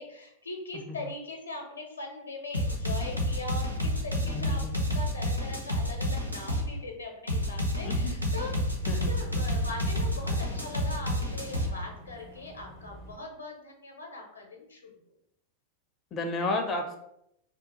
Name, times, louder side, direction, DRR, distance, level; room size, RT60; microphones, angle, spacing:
voice 1, 0.0-14.9, left 2 dB, 80° left, 2 dB, 0.7 m, -41 dB
sound 1, 2.5-6.7 7.3-11.7, equal, 90° right, 0.5 m, -29 dB
voice 2, 4.2-4.8 7.8-7.9 8.9-9.1 16.1-17.0, left 2 dB, 25° left, 4 dB, 0.4 m, -31 dB
Boat Water vehicle / Engine, 7.9-13.2, left 1 dB, 40° right, 0.5 m, -48 dB
2.7 x 2.2 x 4.1 m, 0.75 s
figure-of-eight pair, 90°, 0 cm